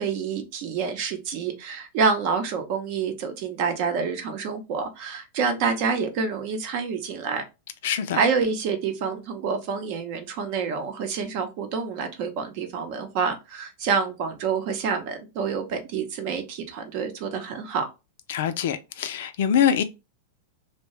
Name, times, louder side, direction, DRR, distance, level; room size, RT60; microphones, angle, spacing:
voice 1, 0.0-7.4 8.1-17.9, right 5 dB, 50° right, 0.7 m, -27 dB
voice 2, 7.8-8.2 18.3-19.8, left 9 dB, 70° left, 0.4 m, -24 dB
2.7 x 2.2 x 3.1 m
supercardioid pair, 140°, 0 cm